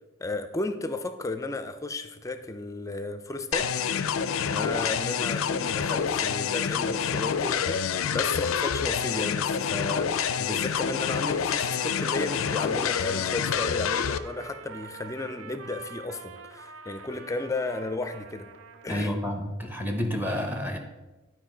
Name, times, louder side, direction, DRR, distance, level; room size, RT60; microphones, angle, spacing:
voice 1, 0.2-3.9 4.2-18.5 18.8-19.1, left 2 dB, 15° left, 10 dB, 0.4 m, -34 dB
sound 1, 3.5-14.2, left 7 dB, 75° left, 0.4 m, -27 dB
Trumpet, 11.5-19.3, right 5 dB, 70° right, 0.5 m, -46 dB
voice 2, 18.9-20.8, left 1 dB, 10° right, 4 dB, 0.8 m, -29 dB
11.0 x 4.6 x 3.8 m, 1.2 s
head